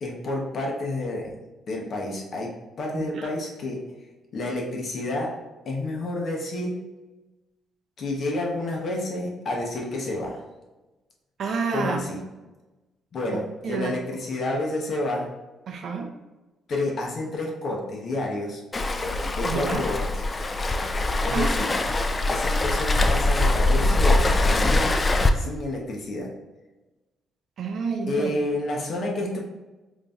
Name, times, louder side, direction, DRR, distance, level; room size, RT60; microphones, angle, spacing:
voice 1, 0.0-1.4 1.7-3.9 4.3-5.3 5.6-6.8 8.0-10.4 11.7-12.3 13.1-15.3 16.7-18.6 19.4-20.2 21.2-21.7 22.3-24.9 25.3-26.3 28.1-29.4, left 2 dB, 55° left, 0 dB, 0.8 m, -29 dB
voice 2, 11.4-12.0 13.3-13.9 15.7-16.1 19.4-19.8 21.3-21.5 27.6-28.3, right 5 dB, 60° right, 3 dB, 0.5 m, -29 dB
Waves surf, 18.7-25.3, left 2 dB, 25° left, 0.3 m, -22 dB
4.9 x 2.6 x 2.3 m, 1.1 s
cardioid pair, 90°, 0 cm